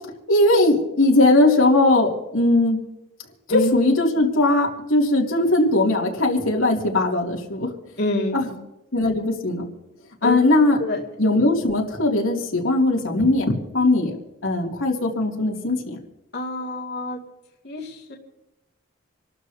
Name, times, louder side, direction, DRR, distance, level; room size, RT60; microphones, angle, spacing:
voice 1, 0.3-2.8 3.5-7.7 8.3-8.5 8.9-9.7 10.2-10.8 11.2-13.5 13.7-14.1 14.4-16.0, left 2 dB, 80° left, -1 dB, 2.6 m, -19 dB
voice 2, 8.0-8.6 10.2-10.4 10.8-11.0 16.3-17.2 17.6-18.2, left 1 dB, 50° left, -3 dB, 2.4 m, -26 dB
28.0 x 13.0 x 2.8 m, 0.92 s
head